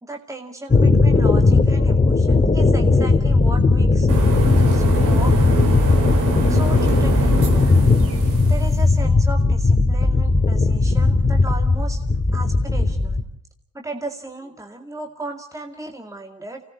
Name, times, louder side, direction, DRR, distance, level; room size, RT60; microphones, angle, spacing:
voice 1, 0.0-4.1 4.7-5.5 6.5-7.5 8.4-12.0 12.3-13.2 13.7-16.6, right 2 dB, 10° right, 3 dB, 2.1 m, -35 dB
sound 1, 0.7-13.2, left 3 dB, 25° left, 2.3 m, -17 dB
sound 2, 4.1-8.9, right 3 dB, 90° right, 4.9 m, -25 dB
26.0 x 18.0 x 8.6 m, 0.68 s
cardioid pair, 90°, 30 cm